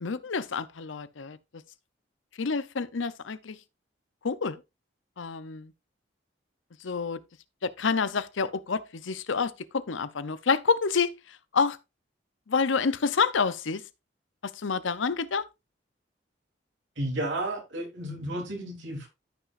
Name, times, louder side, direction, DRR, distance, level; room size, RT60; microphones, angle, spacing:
voice 1, 0.0-1.4 2.4-3.6 4.2-4.6 5.2-5.7 6.8-7.2 7.6-11.1 11.5-11.8 12.5-13.8 14.4-15.5, left 5 dB, 85° left, 0.7 m, -28 dB
voice 2, 17.0-19.1, right 1 dB, 80° right, 3.4 m, -32 dB
14.0 x 5.8 x 2.5 m
head